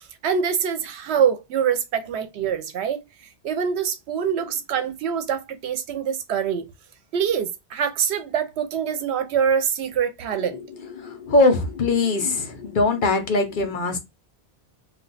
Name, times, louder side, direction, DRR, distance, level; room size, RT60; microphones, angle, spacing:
voice 1, 0.2-3.0 3.4-6.7 7.1-10.6, right 7 dB, 85° right, 0.9 m, -24 dB
voice 2, 10.4-14.0, left 2 dB, 55° left, 0.7 m, -22 dB
2.4 x 2.2 x 3.9 m
omnidirectional pair, 1.1 m